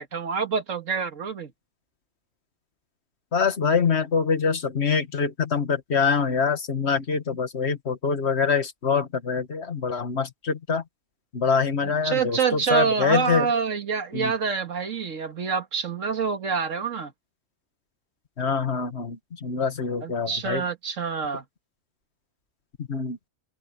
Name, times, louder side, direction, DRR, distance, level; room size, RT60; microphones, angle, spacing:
voice 1, 0.0-1.5 11.8-17.1 20.0-21.4, right 6 dB, 80° right, 2.0 m, -27 dB
voice 2, 3.3-10.8 11.3-13.5 14.1-14.3 18.4-20.6 22.8-23.2, left 5 dB, 55° left, 1.9 m, -25 dB
open air
omnidirectional pair, 1.3 m